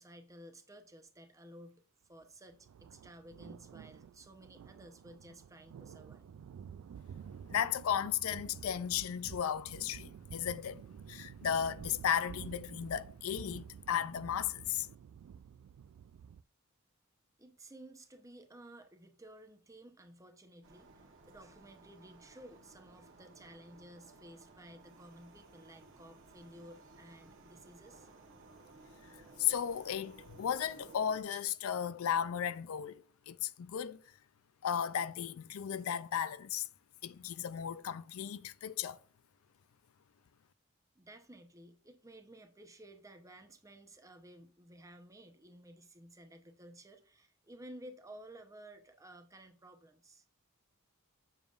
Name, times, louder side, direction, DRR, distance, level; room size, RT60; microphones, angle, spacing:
voice 1, 0.0-1.8 2.1-6.3 17.4-28.1 40.9-50.2, right 1 dB, 15° right, 0.8 m, -55 dB
sound 1, 2.5-16.4, right 7 dB, 85° right, 0.3 m, -51 dB
voice 2, 7.5-10.8 11.1-14.9 29.4-34.0 34.6-36.7 37.0-39.0, left 9 dB, 80° left, 0.4 m, -35 dB
sound 2, 20.6-31.2, right 3 dB, 65° right, 1.2 m, -58 dB
7.2 x 6.9 x 2.5 m
head